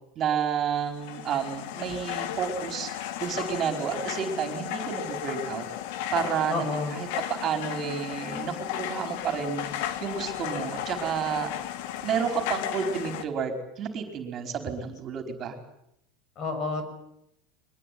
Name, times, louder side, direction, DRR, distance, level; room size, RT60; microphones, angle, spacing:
voice 1, 0.2-2.9 3.2-5.6 6.1-7.1 7.4-11.5 12.0-15.5, right 7 dB, 35° right, 6 dB, 4.8 m, -30 dB
sound 1, 0.9-13.3, left 12 dB, 65° left, 2.1 m, -35 dB
voice 2, 6.5-7.0 16.4-16.8, left 3 dB, 40° left, 9 dB, 6.7 m, -30 dB
23.0 x 21.0 x 9.5 m, 0.77 s
supercardioid pair, 140°, 0 cm